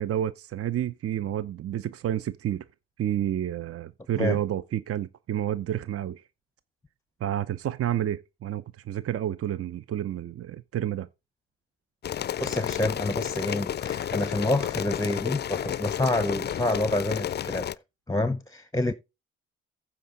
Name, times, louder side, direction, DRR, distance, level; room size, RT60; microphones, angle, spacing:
voice 1, 0.0-2.7 3.0-6.2 7.2-11.1, right 11 dB, 50° right, 0.7 m, -30 dB
sound 1, 12.0-17.8, left 10 dB, 35° left, 0.4 m, -31 dB
voice 2, 12.4-17.7 18.1-18.9, left 1 dB, 10° left, 0.8 m, -28 dB
15.0 x 5.0 x 3.8 m
hypercardioid pair, 45°, 31 cm